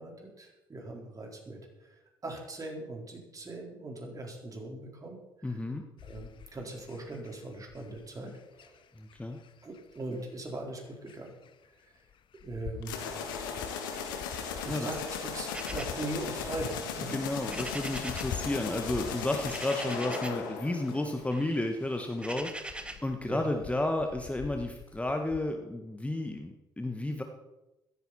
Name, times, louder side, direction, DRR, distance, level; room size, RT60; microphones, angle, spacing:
voice 1, 0.0-1.6 2.2-5.2 5.4-5.6 6.0-8.8 9.6-11.3 12.4-13.0 14.6-17.1 23.3-23.6, right 2 dB, 30° right, 0 dB, 4.5 m, -40 dB
voice 2, 5.4-5.8 9.0-9.4 14.7-14.9 17.1-22.5 22.8-27.2, left 1 dB, 10° left, 4 dB, 1.5 m, -32 dB
sound 1, 6.0-25.4, left 9 dB, 45° left, 0.9 m, -47 dB
sound 2, 12.8-21.5, left 6 dB, 75° left, 1.8 m, -37 dB
sound 3, 15.5-18.4 18.7-20.5 20.9-23.1, right 1 dB, 10° right, 1.3 m, -43 dB
15.5 x 14.0 x 4.4 m, 1.0 s
figure-of-eight pair, 50°, 11 cm